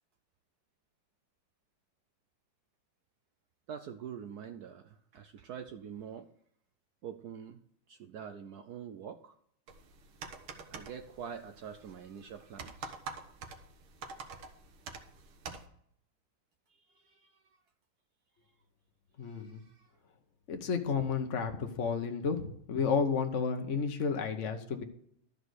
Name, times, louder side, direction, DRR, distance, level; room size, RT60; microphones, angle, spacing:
voice 1, 3.7-6.3 7.0-7.6 7.9-9.3 10.5-13.0 16.7-17.4 19.2-19.9, right 8 dB, 65° right, 8 dB, 1.0 m, -46 dB
sound 1, 9.7-15.7, right 5 dB, 90° right, 2.0 m, -47 dB
voice 2, 19.2-19.6 20.5-24.8, left 5 dB, 50° left, 5 dB, 1.0 m, -32 dB
12.5 x 5.2 x 6.4 m, 0.66 s
omnidirectional pair, 2.2 m